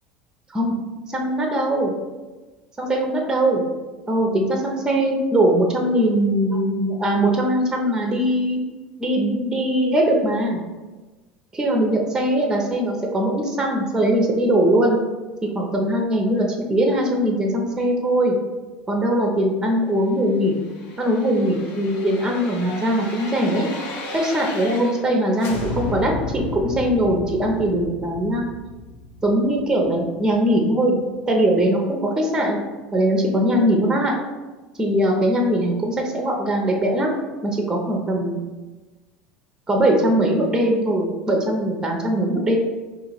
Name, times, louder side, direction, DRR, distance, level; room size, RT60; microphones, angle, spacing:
voice 1, 1.1-1.9 2.8-3.6 4.1-8.6 9.0-10.6 11.5-15.0 15.4-18.4 18.9-20.6 21.0-23.7 24.1-28.4 29.2-31.0 31.3-32.6 32.9-34.1 34.8-37.1 37.4-38.4 39.7-42.6, right 1 dB, 15° right, 1 dB, 0.8 m, -21 dB
sound 1, 20.4-25.1 25.4-30.3 30.6-30.7, left 2 dB, 60° left, 0.7 m, -34 dB
2.8 x 2.7 x 4.3 m, 1.2 s
hypercardioid pair, 80°, 5 cm